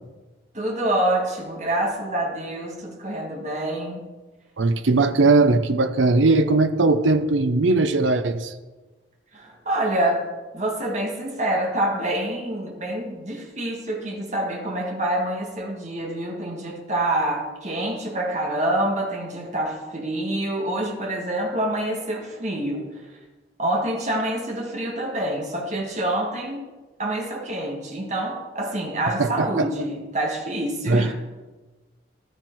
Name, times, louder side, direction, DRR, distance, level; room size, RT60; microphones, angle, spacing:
voice 1, 0.5-4.0 9.3-22.9 23.6-26.6 27.0-31.1, right 1 dB, 40° right, 0 dB, 1.7 m, -26 dB
voice 2, 4.6-8.5 29.2-29.7 30.9-31.1, right 3 dB, 90° right, 10 dB, 0.7 m, -19 dB
12.0 x 9.5 x 4.6 m, 1.2 s
head